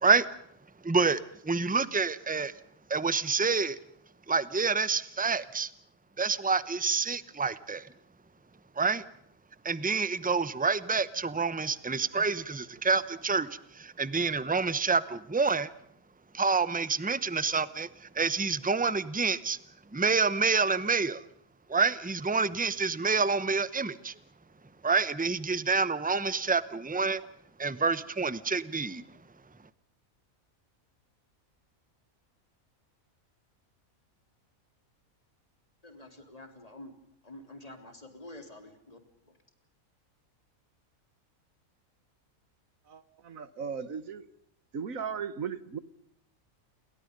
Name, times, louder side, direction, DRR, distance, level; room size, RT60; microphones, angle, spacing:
voice 1, 0.8-2.5 2.9-3.8 4.3-5.7 6.2-7.9 8.8-9.0 9.6-13.5 13.7-15.7 16.3-19.6 19.9-21.2 21.7-24.1 24.8-27.2 27.6-29.0, right 4 dB, 10° right, 16 dB, 0.7 m, -28 dB
voice 2, 35.8-36.9 37.2-39.0, left 1 dB, 25° left, 6 dB, 3.7 m, -48 dB
voice 3, 42.9-44.3 44.7-45.8, right 6 dB, 70° right, 15 dB, 1.7 m, -37 dB
29.0 x 23.0 x 5.3 m, 0.71 s
omnidirectional pair, 1.5 m